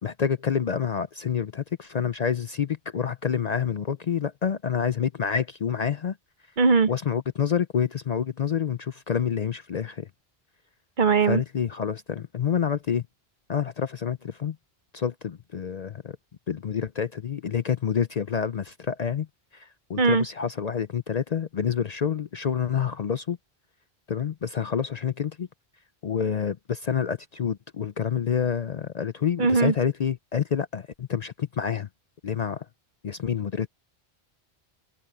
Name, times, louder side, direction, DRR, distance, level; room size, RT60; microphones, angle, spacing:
voice 1, 0.0-6.2 6.9-10.1 11.3-13.0 13.5-14.6 14.9-16.2 16.5-19.3 19.5-23.4 24.1-25.5 26.0-31.9 32.2-32.7 33.0-33.7, left 7 dB, 50° left, 0.6 m, -28 dB
voice 2, 6.6-6.9 11.0-11.4 20.0-20.2 29.4-29.7, right 4 dB, 50° right, 1.0 m, -20 dB
omnidirectional pair, 1.1 m